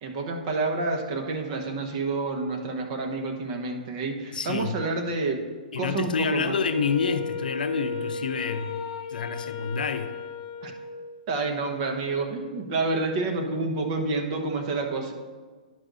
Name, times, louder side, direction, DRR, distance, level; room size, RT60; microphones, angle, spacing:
voice 1, 0.0-5.4 5.8-6.6 10.6-10.7 11.3-15.1, right 3 dB, 45° right, 3 dB, 1.2 m, -29 dB
voice 2, 4.3-4.8 5.7-8.8 9.1-10.2, left 5 dB, 90° left, 9 dB, 0.6 m, -28 dB
Wind instrument woodwind instrument, 6.5-11.2, left 5 dB, 50° left, 0.8 m, -35 dB
10.5 x 6.0 x 2.7 m, 1.4 s
hypercardioid pair, 140°, 5 cm